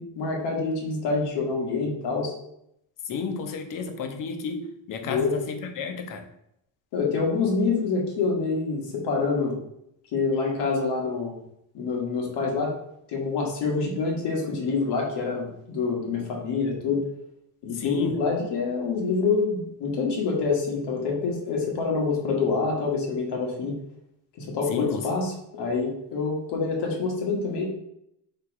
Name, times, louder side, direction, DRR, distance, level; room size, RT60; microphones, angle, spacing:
voice 1, 0.0-2.3 5.0-5.3 6.9-9.6 10.1-11.4 11.7-12.8 13.1-17.0 17.6-23.8 24.4-27.7, left 4 dB, 60° left, 0 dB, 1.5 m, -26 dB
voice 2, 3.1-6.3 17.7-18.2 24.7-25.1, left 5 dB, 45° left, 6 dB, 0.7 m, -31 dB
3.3 x 3.0 x 4.5 m, 0.77 s
cardioid pair, 145°, 46 cm